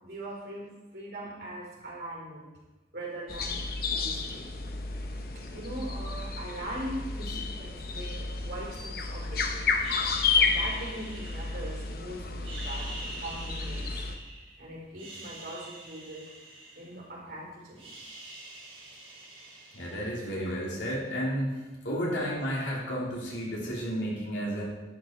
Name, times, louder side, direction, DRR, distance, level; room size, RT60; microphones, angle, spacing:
voice 1, 0.0-2.5 2.9-3.7 4.0-4.4 5.5-9.8 10.3-14.0 14.6-16.3 16.8-18.0, right 1 dB, 60° right, -4 dB, 3.8 m, -41 dB
sound 1, 3.3-14.1, left 4 dB, 55° left, 0.8 m, -31 dB
sound 2, 9.8-12.0 12.4-14.5 14.9-17.3 17.5-20.4, right 2 dB, 30° right, 3.3 m, -45 dB
voice 2, 19.7-21.6 21.8-24.6, equal, 80° left, -4 dB, 3.2 m, -32 dB
11.0 x 8.6 x 4.5 m, 1.2 s
head